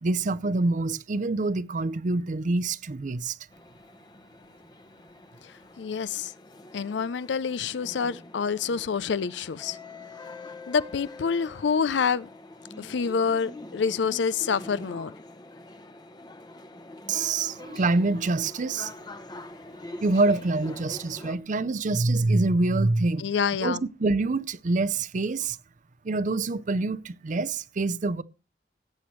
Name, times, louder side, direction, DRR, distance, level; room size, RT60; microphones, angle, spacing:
voice 1, 0.0-3.4 17.1-18.9 20.0-23.2 23.6-25.6 26.0-28.2, right 3 dB, 45° right, 0.6 m, -26 dB
sound 1, 3.5-21.4, left 2 dB, 25° left, 0.8 m, -45 dB
voice 2, 5.8-6.3 6.7-9.8 10.7-12.3 12.8-15.1 23.2-23.8, left 6 dB, 85° left, 0.5 m, -27 dB
17.0 x 8.5 x 3.1 m
head